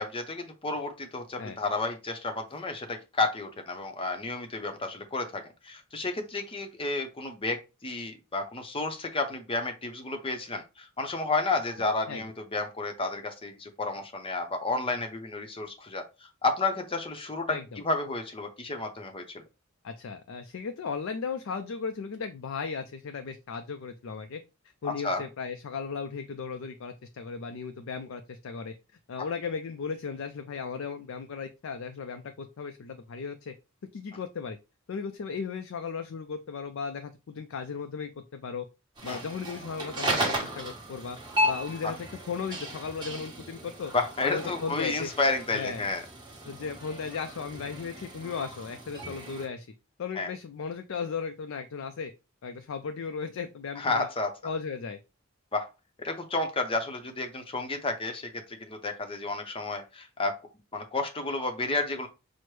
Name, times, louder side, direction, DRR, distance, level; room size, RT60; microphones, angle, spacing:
voice 1, 0.0-17.6 17.8-19.2 24.8-25.2 39.1-39.2 43.9-46.0 50.2-50.3 53.8-54.3 55.5-55.7 56.0-60.4 60.7-62.1, left 3 dB, 25° left, 6 dB, 0.7 m, -31 dB
voice 2, 17.5-17.8 19.8-24.4 24.8-28.7 29.1-33.5 33.9-34.6 34.9-38.7 39.0-41.2 41.4-43.9 44.2-45.1 45.5-45.8 46.4-49.7 50.0-52.1 52.4-54.1 54.4-55.0, left 5 dB, 65° left, 7 dB, 0.4 m, -36 dB
sound 1, 39.0-49.5, equal, 20° right, 1.2 m, -35 dB
6.0 x 2.1 x 3.2 m, 0.28 s
head